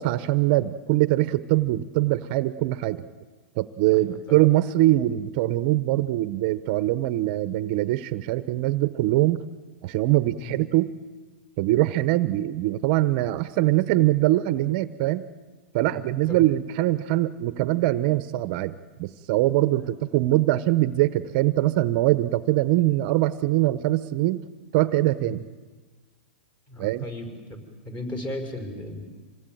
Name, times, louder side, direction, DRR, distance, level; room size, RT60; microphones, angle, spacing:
voice 1, 0.0-3.1 3.6-9.4 9.8-10.9 11.6-15.3 15.7-24.4 24.7-25.4 26.8-27.1, right 16 dB, 45° right, 13 dB, 0.8 m, -23 dB
voice 2, 3.9-4.4 10.4-10.6 12.3-12.4 15.9-16.0 16.3-16.5 19.7-19.9 25.2-25.4 26.7-29.0, left 1 dB, 25° left, 5 dB, 5.1 m, -36 dB
26.0 x 18.5 x 9.2 m, 1.4 s
hypercardioid pair, 140°, 6 cm